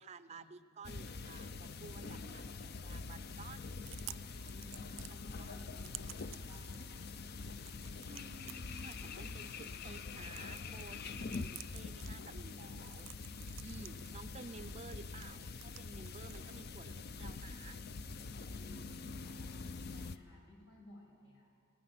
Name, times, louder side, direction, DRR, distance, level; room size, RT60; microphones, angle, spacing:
voice 1, 0.0-3.7 5.4-5.7 8.0-13.1 13.6-17.8, right 4 dB, 35° right, 14 dB, 0.5 m, -53 dB
sound 1, 0.8-20.2, left 4 dB, 50° left, 0.6 m, -45 dB
Chewing mastication, 3.5-17.5, right 15 dB, 85° right, 0.5 m, -56 dB
voice 2, 4.5-7.1 18.5-19.7 19.9-21.5, left 1 dB, 75° left, -1 dB, 6.4 m, -58 dB
28.0 x 17.0 x 5.9 m, 2.2 s
head